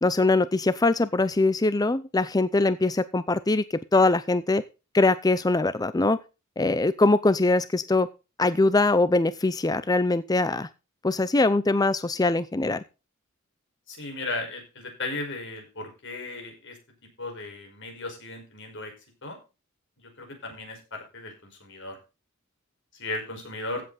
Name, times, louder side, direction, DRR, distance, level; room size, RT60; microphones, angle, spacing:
voice 1, 0.0-4.6 4.9-6.2 6.6-8.1 8.4-10.7 11.0-12.8, left 2 dB, 20° left, 15 dB, 0.5 m, -22 dB
voice 2, 13.9-16.8 17.2-18.9 19.2-19.4 20.0-22.0 22.9-23.8, left 2 dB, 60° left, 4 dB, 5.1 m, -36 dB
15.5 x 7.8 x 4.1 m, 0.30 s
head